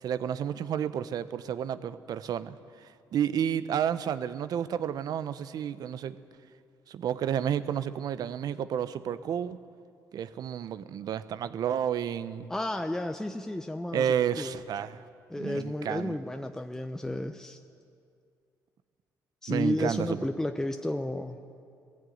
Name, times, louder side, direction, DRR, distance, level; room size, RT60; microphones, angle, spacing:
voice 1, 0.0-2.6 3.1-6.2 6.9-9.6 10.1-12.5 13.9-15.0 15.4-16.2 19.5-20.3, right 9 dB, 65° right, 13 dB, 0.8 m, -31 dB
voice 2, 12.5-14.5 15.3-17.6 19.4-21.4, left 1 dB, 5° left, 6 dB, 0.9 m, -32 dB
19.0 x 15.0 x 9.3 m, 2.3 s
cardioid pair, 90°, 7 cm